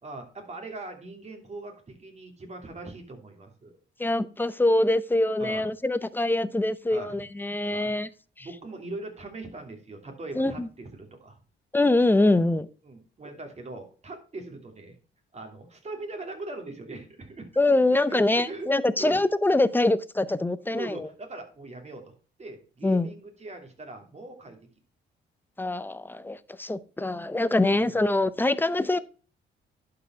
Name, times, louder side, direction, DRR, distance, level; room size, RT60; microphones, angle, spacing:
voice 1, 0.0-3.7 5.4-5.7 6.9-7.1 7.6-7.9 8.4-11.4 12.8-14.9 15.3-17.8 18.1-18.7 19.0-19.2 20.7-22.1 22.4-24.6 27.9-28.0, right 2 dB, 35° right, 3 dB, 2.8 m, -40 dB
voice 2, 4.0-8.1 8.4-8.5 10.3-10.7 11.7-12.7 17.6-21.1 22.8-23.1 25.6-29.0, left 2 dB, 10° left, 15 dB, 0.6 m, -24 dB
11.5 x 4.9 x 4.5 m, 0.37 s
cardioid pair, 90°, 20 cm